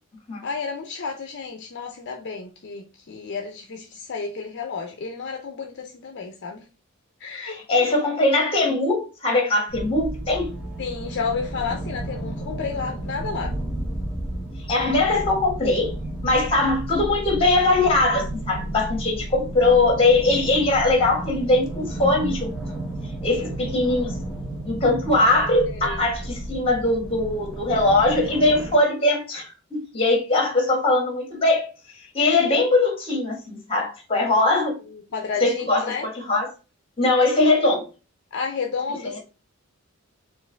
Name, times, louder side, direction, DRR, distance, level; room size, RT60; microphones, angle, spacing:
voice 1, 0.4-6.6 7.2-8.2 10.8-13.6 25.6-26.0 34.9-36.1 38.3-39.2, left 5 dB, 55° left, 0.6 m, -31 dB
voice 2, 7.4-10.5 14.7-15.9 16.2-22.5 23.2-24.1 24.6-31.7 32.0-34.8 35.4-36.5 37.0-37.9, left 2 dB, 25° left, 1.5 m, -21 dB
sound 1, 9.7-28.7, right 1 dB, 5° right, 1.0 m, -33 dB
sound 2, 13.4-16.7 17.1-19.3 19.6-20.0 20.3-22.2 22.5-22.6 22.9-23.3 23.7-23.8 26.0-26.1, right 1 dB, 35° right, 1.2 m, -36 dB
4.6 x 2.5 x 3.3 m
head